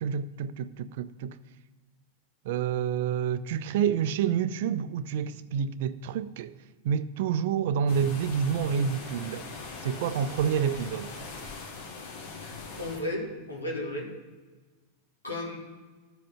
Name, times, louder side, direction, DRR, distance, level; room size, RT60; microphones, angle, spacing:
voice 1, 0.0-1.4 2.4-6.5 6.8-9.5 9.8-11.2, right 8 dB, 55° right, 0.4 m, -28 dB
sound 1, 7.9-13.0, left 4 dB, 55° left, 1.7 m, -41 dB
voice 2, 12.4-14.1 15.2-15.6, left 1 dB, 80° left, 2.2 m, -34 dB
13.0 x 5.0 x 5.8 m
figure-of-eight pair, 90°, 0 cm